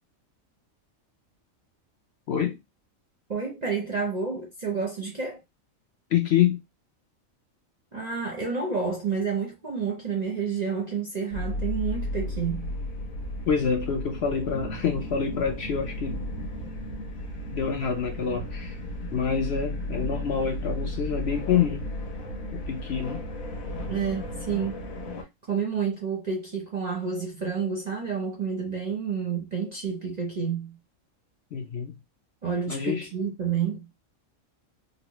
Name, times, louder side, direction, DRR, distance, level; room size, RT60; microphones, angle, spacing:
voice 1, 2.3-2.6 6.1-6.6 13.4-16.2 17.5-18.8 19.1-21.9 22.5-23.2 31.5-32.0 32.7-33.1, left 7 dB, 60° left, 0.8 m, -27 dB
voice 2, 3.3-5.4 7.9-12.7 23.9-24.7 25.5-30.8 32.4-33.9, right 6 dB, 45° right, 0.6 m, -29 dB
sound 1, 11.3-25.2, left 1 dB, 80° left, 1.3 m, -34 dB
4.0 x 2.0 x 2.9 m
omnidirectional pair, 1.4 m